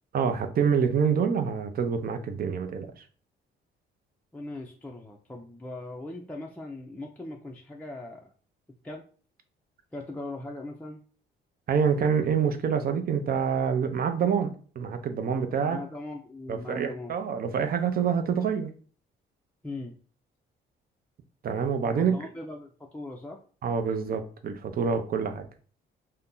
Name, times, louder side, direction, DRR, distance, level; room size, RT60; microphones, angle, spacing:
voice 1, 0.1-2.9 11.7-15.8 16.5-18.7 21.4-22.2 23.6-25.5, right 6 dB, 50° right, 7 dB, 0.5 m, -26 dB
voice 2, 4.3-8.3 8.8-9.0 9.9-11.0 15.6-17.1 19.6-19.9 21.9-23.4, left 2 dB, 10° left, -1 dB, 0.4 m, -40 dB
2.7 x 2.1 x 3.7 m, 0.42 s
cardioid pair, 90°, 20 cm